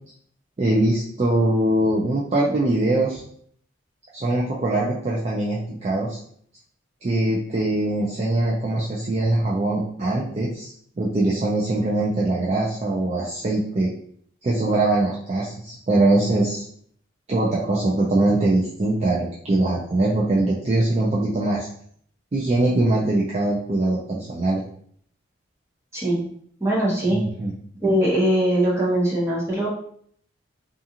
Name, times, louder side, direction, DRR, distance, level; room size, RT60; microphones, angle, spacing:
voice 1, 0.6-3.2 4.1-6.2 7.0-13.9 14.4-16.6 17.3-21.7 22.3-24.6 27.1-27.5, right 2 dB, 35° right, -5 dB, 0.4 m, -22 dB
voice 2, 25.9-26.2 26.6-27.2 27.8-29.7, right 1 dB, 15° right, -6 dB, 0.9 m, -21 dB
2.4 x 2.4 x 2.8 m, 0.62 s
head